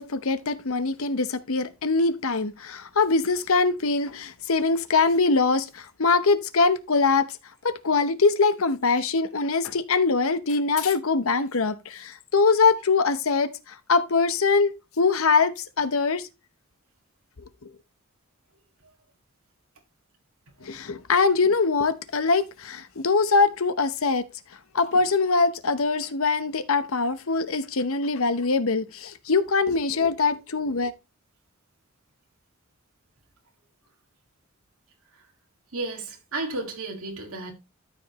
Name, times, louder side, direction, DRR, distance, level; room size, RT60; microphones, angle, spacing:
voice 1, 0.0-7.4 7.6-14.7 15.0-16.3 17.6-17.7 20.6-24.3 24.7-30.9, left 4 dB, 70° left, 0.9 m, -23 dB
voice 2, 35.7-37.5, right 2 dB, 70° right, 2.0 m, -32 dB
13.0 x 5.1 x 3.0 m
head